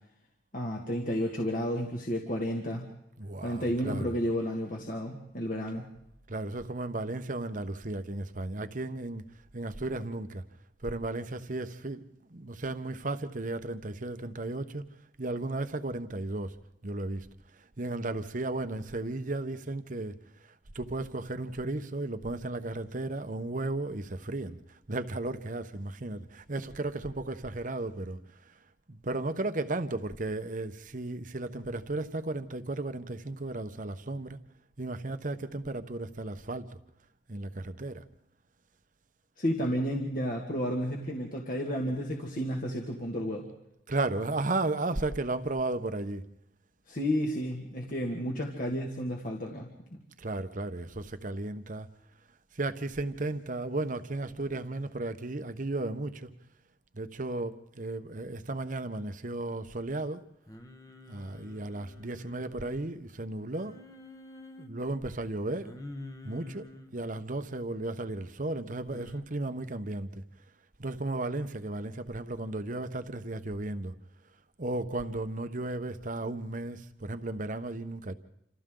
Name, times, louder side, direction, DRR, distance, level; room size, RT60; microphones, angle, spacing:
voice 1, 0.5-2.9 3.4-5.9 39.4-43.5 46.9-49.7, equal, 50° left, 2.1 m, -32 dB
voice 2, 3.2-4.1 6.3-9.2 9.5-10.4 10.8-12.1 12.3-14.8 15.2-16.6 16.8-17.3 17.5-24.6 24.9-28.2 28.9-34.4 34.8-36.8 37.3-38.0 43.9-46.3 50.2-51.9 52.5-56.3 56.9-60.3 61.1-63.8 64.6-65.7 66.2-70.2 70.8-73.9 74.6-78.1, right 2 dB, 45° right, 1.0 m, -34 dB
Singing, 60.5-62.9 63.5-64.7 65.6-66.9 68.9-69.2, left 1 dB, 20° left, 1.2 m, -47 dB
28.5 x 26.5 x 3.9 m
head